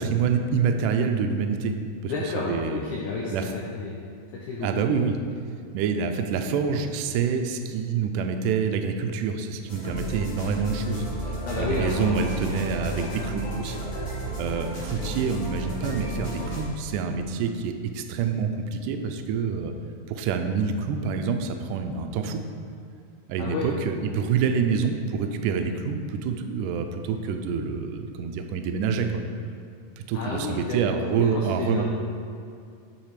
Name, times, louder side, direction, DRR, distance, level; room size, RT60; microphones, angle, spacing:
voice 1, 0.0-1.8 2.0-2.8 3.3-3.5 4.6-5.2 5.7-13.8 14.4-19.7 20.1-22.4 23.3-29.1 30.0-31.8, right 6 dB, 80° right, 5 dB, 1.9 m, -27 dB
voice 2, 2.1-4.0 4.3-4.9 11.5-12.6 15.0-15.1 23.4-23.7 30.1-31.8, left 4 dB, 75° left, -3 dB, 1.9 m, -31 dB
sound 1, 9.7-16.7, right 1 dB, 45° left, 2.7 m, -32 dB
7.3 x 5.8 x 4.8 m, 2.4 s
omnidirectional pair, 4.1 m